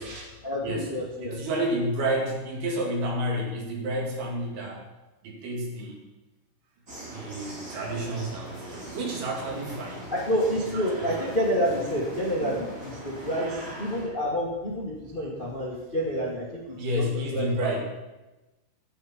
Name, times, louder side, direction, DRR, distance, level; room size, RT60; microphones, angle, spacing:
voice 1, 0.0-1.4 10.1-17.1 17.3-17.7, equal, 80° left, -3 dB, 0.4 m, -29 dB
voice 2, 0.6-0.9 1.2-4.8 5.2-6.0 7.1-10.0 10.7-11.3 12.4-12.6 16.8-17.8, right 1 dB, 70° right, -1 dB, 4.2 m, -30 dB
sound 1, 6.9-14.1, right 1 dB, 25° right, 2.8 m, -41 dB
16.0 x 9.0 x 4.4 m, 1.1 s
omnidirectional pair, 4.7 m